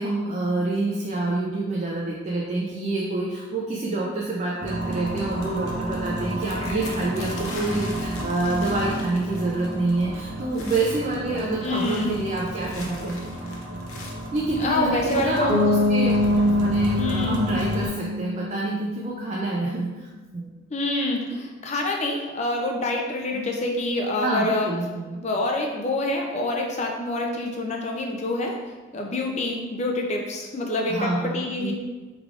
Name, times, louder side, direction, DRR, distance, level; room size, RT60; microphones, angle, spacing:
voice 1, 0.0-13.2 14.3-20.1 20.3-20.5 23.3-23.5 24.2-25.2 30.9-31.7, right 2 dB, 30° right, -4 dB, 0.4 m, -27 dB
sound 1, 4.6-17.9, right 1 dB, 60° right, 0.8 m, -32 dB
sound 2, 6.4-9.7 10.0-10.2 10.5-11.1 11.6-14.3 15.0-15.6 16.3-16.4 16.7-17.0, left 3 dB, 85° left, 0.7 m, -42 dB
voice 2, 11.6-12.2 14.6-15.6 17.0-17.4 20.7-24.7 25.1-28.6 28.9-31.7, left 2 dB, 35° left, 1 dB, 0.5 m, -26 dB
Bass guitar, 15.5-19.3, left 2 dB, ahead, 1.0 m, -24 dB
4.9 x 3.4 x 2.4 m, 1.3 s
head